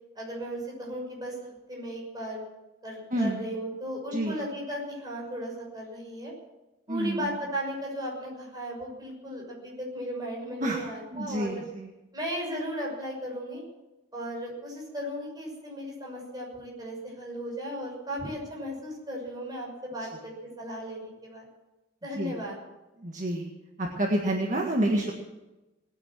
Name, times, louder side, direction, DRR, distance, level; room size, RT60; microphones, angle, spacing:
voice 1, 0.1-1.4 1.7-2.4 2.8-6.3 6.9-11.6 12.1-13.6 14.1-21.4 22.0-22.6, equal, 20° right, -2 dB, 6.3 m, -36 dB
voice 2, 3.1-3.4 4.1-4.4 6.9-7.3 10.6-10.8 11.1-11.9 22.1-22.3 23.0-23.5 23.8-25.1, right 1 dB, 45° right, 1 dB, 1.7 m, -28 dB
20.0 x 9.6 x 7.5 m, 1.0 s
head